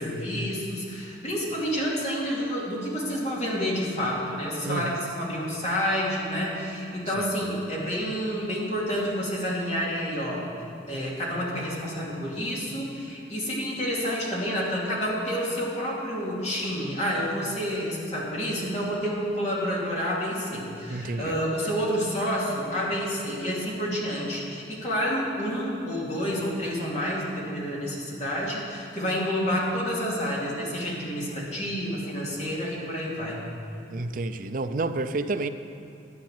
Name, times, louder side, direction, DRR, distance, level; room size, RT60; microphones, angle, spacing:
voice 1, 0.0-10.5 10.9-33.4, equal, 40° left, -4 dB, 2.6 m, -29 dB
voice 2, 4.6-5.0 7.2-7.5 20.9-21.4 33.9-35.5, right 3 dB, 50° right, 10 dB, 0.5 m, -30 dB
12.0 x 8.9 x 7.3 m, 2.5 s
head